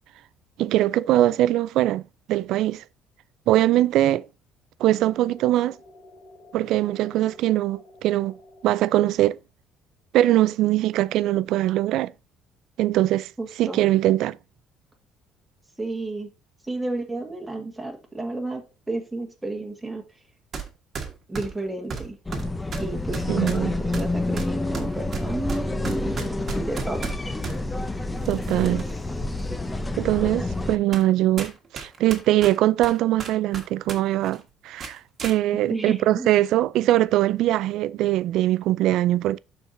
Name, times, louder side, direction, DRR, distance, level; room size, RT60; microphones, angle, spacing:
voice 1, 0.6-2.0 2.3-2.8 3.5-4.3 4.8-5.8 6.5-8.4 8.6-9.4 10.1-12.1 12.8-13.3 13.6-14.4 23.3-23.7 28.3-28.9 30.0-39.4, right 14 dB, 65° right, 0.3 m, -22 dB
sound 1, 4.8-8.8, left 2 dB, 40° left, 1.4 m, -50 dB
voice 2, 13.4-13.8 15.8-16.3 16.6-20.0 21.3-22.2 22.7-27.1 35.7-36.3, right 2 dB, 10° right, 1.5 m, -32 dB
sound 2, 20.5-20.7 20.9-27.6 28.2-29.0 29.4-29.5 30.2-30.3 30.9-31.1 31.4-34.0 34.2-34.4 34.8-35.4, right 5 dB, 35° right, 1.4 m, -34 dB
sound 3, 22.3-30.8, left 2 dB, 10° left, 0.6 m, -28 dB
12.0 x 4.6 x 2.6 m
cardioid pair, 145°, 0 cm